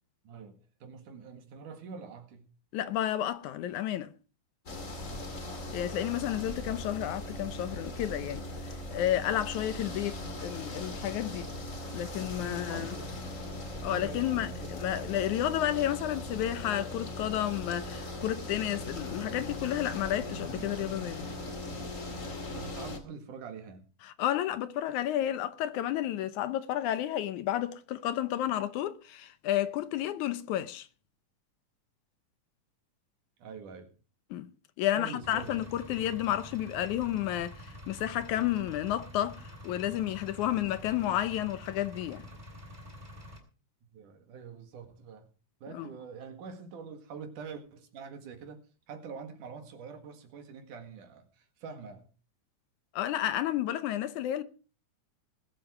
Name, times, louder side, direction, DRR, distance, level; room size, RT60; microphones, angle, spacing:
voice 1, 0.2-2.5 5.0-5.3 6.1-6.3 12.4-15.1 20.5-20.7 21.2-23.9 33.4-33.9 34.9-35.6 42.3-42.5 43.9-45.3 45.6-52.1, right 6 dB, 75° right, 3.4 m, -46 dB
voice 2, 2.7-4.1 5.7-8.5 8.9-11.5 11.9-13.0 13.8-21.3 24.2-30.9 34.3-34.5 34.8-42.3 45.7-45.9 52.9-54.4, left 12 dB, 75° left, 2.2 m, -31 dB
sound 1, 4.7-23.0, left 1 dB, 25° left, 2.3 m, -39 dB
Engine, 35.2-43.4, left 1 dB, 15° right, 3.8 m, -47 dB
20.5 x 8.0 x 4.9 m
omnidirectional pair, 3.6 m